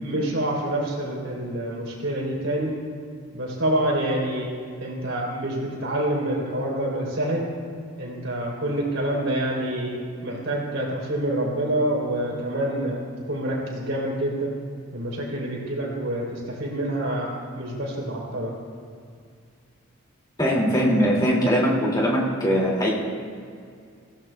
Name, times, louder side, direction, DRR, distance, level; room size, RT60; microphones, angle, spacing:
voice 1, 0.0-2.7 3.3-4.5 4.8-7.5 8.0-14.5 14.9-18.6, right 1 dB, 65° right, -3 dB, 3.5 m, -27 dB
voice 2, 20.4-22.9, equal, 20° left, -4 dB, 2.2 m, -21 dB
20.5 x 16.0 x 2.3 m, 2.2 s
head